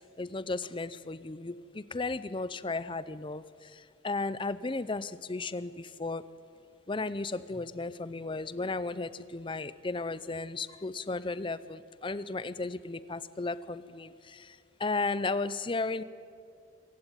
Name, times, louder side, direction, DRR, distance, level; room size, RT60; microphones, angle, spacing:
voice 1, 0.2-3.4 4.0-6.2 6.9-14.1 14.8-16.0, left 3 dB, 25° left, 16 dB, 0.6 m, -34 dB
25.5 x 15.5 x 9.0 m, 2.4 s
head